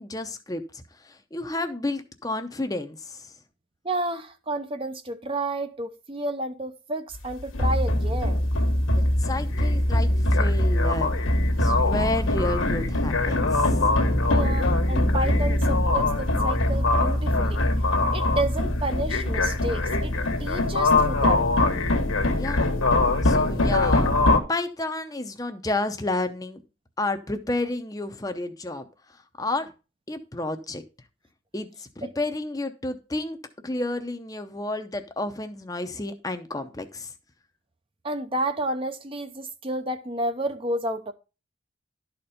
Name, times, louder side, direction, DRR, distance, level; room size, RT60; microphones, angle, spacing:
voice 1, 0.0-3.3 8.9-11.1 11.6-13.8 22.4-22.6 23.2-24.1 24.5-26.6 27.0-28.9 29.4-29.7 30.1-30.8 31.5-33.4 33.6-37.1, left 2 dB, 20° left, 0.7 m, -31 dB
voice 2, 3.8-8.5 14.3-17.7 18.1-20.1 20.4-21.5 32.0-32.1 38.0-41.1, right 1 dB, 25° right, 0.6 m, -31 dB
sound 1, 7.1-24.4, left 2 dB, 85° left, 1.4 m, -22 dB
12.0 x 4.4 x 5.0 m
head